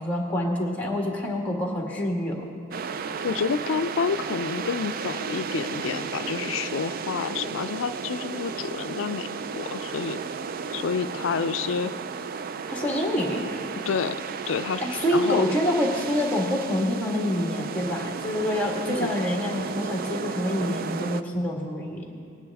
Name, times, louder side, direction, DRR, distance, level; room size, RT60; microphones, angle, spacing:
voice 1, 0.0-2.4 12.7-13.5 14.8-22.0, left 1 dB, 10° left, -1 dB, 1.7 m, -26 dB
sound 1, 2.7-21.2, right 5 dB, 45° right, 0.3 m, -34 dB
voice 2, 3.2-9.3 9.5-10.2 10.7-11.9 13.9-15.4 18.9-19.1, left 6 dB, 75° left, 13 dB, 0.4 m, -29 dB
19.0 x 10.0 x 3.5 m, 2.3 s
head